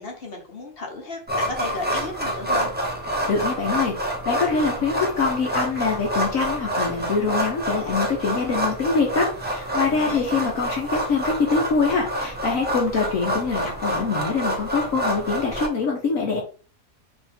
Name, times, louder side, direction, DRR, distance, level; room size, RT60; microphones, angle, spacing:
voice 1, 0.0-2.7 9.9-10.4, left 3 dB, 40° left, 1 dB, 1.2 m, -33 dB
sound 1, 1.3-15.7, right 1 dB, 10° right, 0.5 m, -27 dB
voice 2, 3.3-16.4, left 4 dB, 60° left, 0 dB, 1.2 m, -24 dB
4.5 x 3.1 x 3.5 m, 0.38 s
omnidirectional pair, 1.7 m